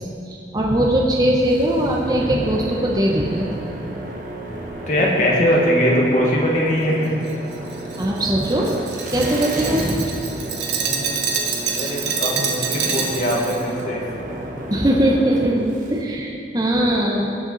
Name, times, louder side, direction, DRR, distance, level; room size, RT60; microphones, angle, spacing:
voice 1, 0.0-3.6 8.0-8.8 9.1-10.1 14.7-17.4, right 1 dB, 20° right, -2 dB, 1.0 m, -20 dB
sound 1, 1.4-16.0, right 1 dB, 45° right, 1.3 m, -33 dB
voice 2, 4.9-7.1 10.8-11.2 11.7-14.0, equal, 45° left, -3 dB, 2.0 m, -20 dB
Glass, 7.3-13.6, right 6 dB, 75° right, 1.2 m, -26 dB
18.5 x 6.9 x 4.1 m, 2.6 s
head